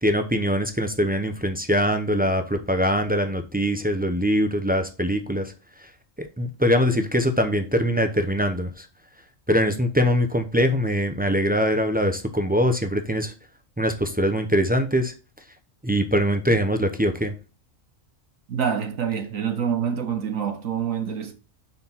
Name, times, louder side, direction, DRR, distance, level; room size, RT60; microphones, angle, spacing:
voice 1, 0.0-5.5 6.2-8.9 9.5-13.3 13.8-15.1 15.8-17.3, equal, 15° right, 0.3 m, -22 dB
voice 2, 18.5-21.3, right 7 dB, 85° right, 1.4 m, -26 dB
5.5 x 4.4 x 5.5 m
omnidirectional pair, 1.3 m